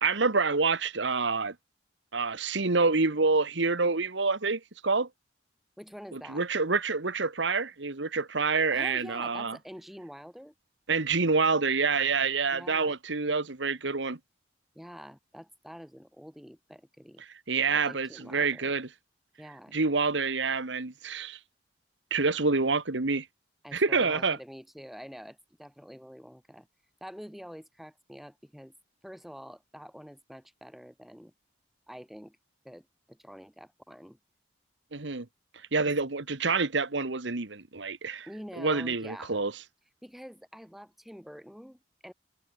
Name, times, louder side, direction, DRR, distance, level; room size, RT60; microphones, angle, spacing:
voice 1, 0.0-1.5 2.1-5.1 6.1-9.6 10.9-14.2 17.5-18.9 19.7-21.4 22.1-23.3 23.7-24.4 34.9-35.3 35.7-38.3 38.6-39.5, right 4 dB, 75° right, 1.4 m, -27 dB
voice 2, 5.8-6.4 8.7-10.5 12.5-13.0 14.8-17.2 17.7-18.7 19.4-19.8 23.6-26.7 27.0-28.7 29.0-31.3 31.9-32.4 32.6-34.2 35.8-35.9 38.3-39.4 40.0-42.1, equal, ahead, 7.3 m, -46 dB
head